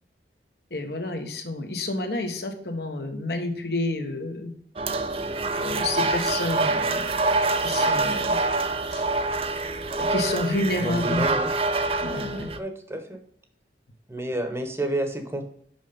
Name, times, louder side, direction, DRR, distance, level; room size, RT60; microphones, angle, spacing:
voice 1, 0.7-4.5 5.6-7.1 7.6-8.4 8.9-9.0 10.0-11.3 12.0-12.5, left 2 dB, 65° left, 5 dB, 1.3 m, -29 dB
sound 1, 4.8-12.6, right 2 dB, 35° right, 0.6 m, -25 dB
voice 2, 10.8-11.5 12.6-13.2 14.1-15.4, right 1 dB, 15° right, 6 dB, 1.0 m, -30 dB
6.0 x 5.7 x 5.1 m, 0.65 s
head